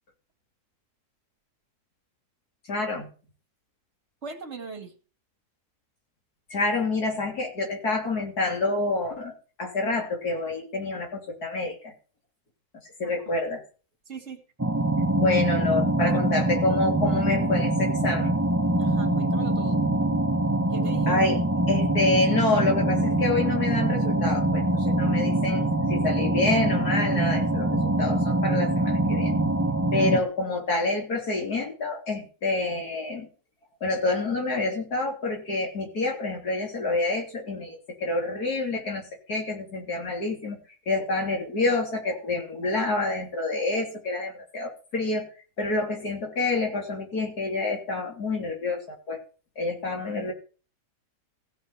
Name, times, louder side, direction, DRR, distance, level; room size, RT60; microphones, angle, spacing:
voice 1, 2.6-3.1 6.5-11.9 13.0-13.6 15.1-18.4 21.1-21.4 21.7-27.7 28.0-29.3 29.9-33.3 33.8-40.6 40.9-45.3 45.6-49.2 49.6-50.3, left 2 dB, 80° left, 1 dB, 3.8 m, -27 dB
voice 2, 4.2-4.9 13.2-13.3 14.1-14.4 18.8-20.3 20.7-21.2, right 5 dB, 45° right, 6 dB, 2.3 m, -40 dB
sound 1, 14.6-30.2, right 2 dB, 10° right, 0.8 m, -24 dB
16.0 x 5.4 x 7.2 m, 0.37 s
omnidirectional pair, 1.7 m